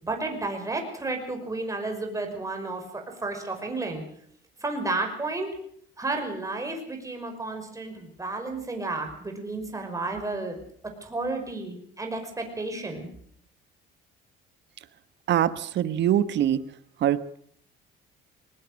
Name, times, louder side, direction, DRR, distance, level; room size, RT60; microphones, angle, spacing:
voice 1, 0.0-4.0 4.6-5.5 6.0-10.6 11.0-13.1, right 2 dB, 15° right, 4 dB, 5.5 m, -32 dB
voice 2, 15.3-16.6 17.0-17.4, right 11 dB, 60° right, 14 dB, 1.3 m, -23 dB
20.5 x 20.0 x 6.5 m, 0.64 s
cardioid pair, 105°, 21 cm